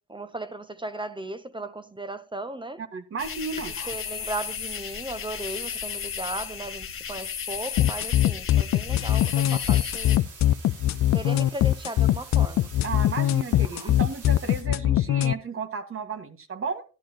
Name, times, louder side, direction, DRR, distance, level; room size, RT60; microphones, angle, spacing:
voice 1, 0.1-2.8 3.8-10.2 11.1-12.7 13.7-13.9, right 2 dB, 15° right, 0.9 m, -36 dB
voice 2, 2.8-3.7 12.8-16.8, right 5 dB, 45° right, 1.9 m, -33 dB
sound 1, 3.2-10.2, left 7 dB, 45° left, 1.8 m, -34 dB
sound 2, 7.8-15.3, left 13 dB, 65° left, 0.6 m, -21 dB
sound 3, 8.9-14.6, right 5 dB, 80° right, 4.3 m, -46 dB
12.0 x 11.5 x 3.0 m
cardioid pair, 90°, 30 cm